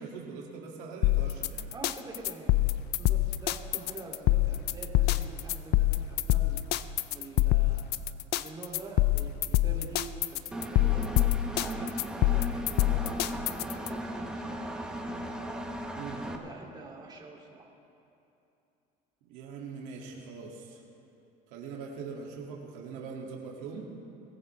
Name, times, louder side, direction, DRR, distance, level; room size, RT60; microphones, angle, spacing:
voice 1, 0.0-1.7 16.0-16.2 19.2-20.8 21.5-23.9, right 5 dB, 85° right, -2 dB, 2.3 m, -42 dB
sound 1, 1.0-13.9, left 16 dB, 70° left, 0.5 m, -26 dB
voice 2, 1.7-2.5 3.0-6.6 7.1-7.9 8.3-11.1 11.4-15.6 16.1-17.6, right 3 dB, 25° right, -2 dB, 2.7 m, -46 dB
Engine, 10.5-16.4, right 1 dB, 5° right, 1.3 m, -37 dB
22.0 x 15.0 x 3.3 m, 2.7 s
cardioid pair, 105°, 18 cm